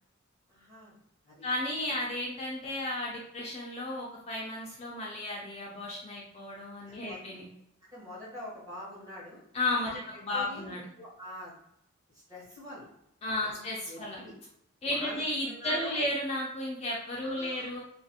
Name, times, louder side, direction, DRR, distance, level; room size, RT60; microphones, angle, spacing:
voice 1, 0.5-0.9 1.2-1.4 7.1-7.2 7.8-9.4 9.8-10.0 10.3-11.5 12.1-12.9 13.4-13.6 13.9-14.3 14.9-15.2 15.5-16.0 17.2-17.8, left 1 dB, 15° right, -6 dB, 1.0 m, -44 dB
voice 2, 1.4-7.4 9.5-10.8 13.2-14.2 14.8-17.8, left 1 dB, 30° left, -3 dB, 0.4 m, -33 dB
2.4 x 2.4 x 2.7 m, 0.75 s
head